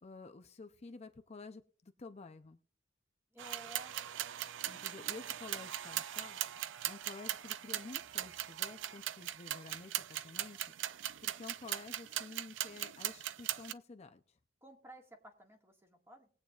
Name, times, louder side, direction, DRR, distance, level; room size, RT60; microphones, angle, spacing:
voice 1, 0.0-2.6 4.7-6.4 6.9-10.7 11.2-14.4, left 3 dB, 35° left, 8 dB, 0.5 m, -51 dB
voice 2, 3.3-4.0 14.6-16.3, equal, 15° right, 2 dB, 1.8 m, -54 dB
sound 1, 3.4-13.7, right 13 dB, 70° right, 0.4 m, -40 dB
20.0 x 8.7 x 2.4 m, 0.42 s
head